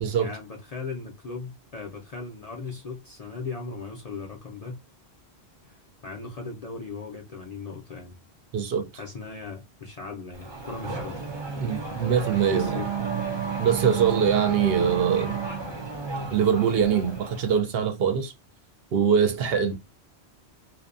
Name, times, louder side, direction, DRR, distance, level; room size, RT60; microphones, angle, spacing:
voice 1, 0.2-4.8 5.6-8.1 8.9-11.2 11.7-12.1 12.5-12.9 19.7-19.8, left 4 dB, 50° left, 0.5 m, -38 dB
voice 2, 8.5-8.9 11.6-12.8 13.6-15.3 16.3-18.3 18.9-19.7, right 7 dB, 70° right, 0.8 m, -23 dB
Race car auto racing / Accelerating revving vroom, 10.3-17.6, right 5 dB, 35° right, 0.5 m, -32 dB
2.6 x 2.1 x 2.4 m
omnidirectional pair, 1.1 m